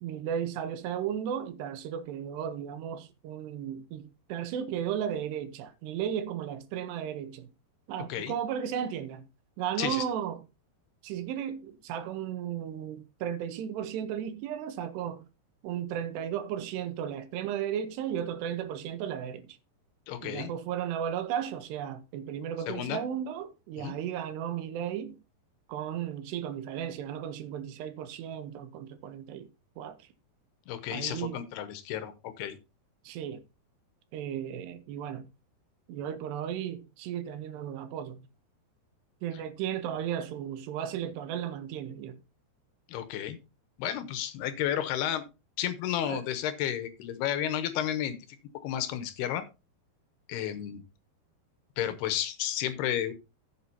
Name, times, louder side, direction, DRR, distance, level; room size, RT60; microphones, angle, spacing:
voice 1, 0.0-7.5 7.9-9.3 9.6-10.4 11.0-15.2 15.6-19.5 20.2-25.2 25.7-29.5 29.8-30.1 30.9-31.4 33.0-33.4 34.1-35.3 35.9-38.2 39.2-42.2 46.0-46.2, right 9 dB, 85° right, 3.0 m, -35 dB
voice 2, 20.1-20.5 22.7-23.0 23.8-23.9 30.7-32.6 42.9-43.4 43.8-45.2 45.6-48.2 48.6-49.5 50.3-50.8 51.8-53.1, left 10 dB, 80° left, 2.8 m, -32 dB
14.0 x 7.6 x 2.8 m
omnidirectional pair, 4.9 m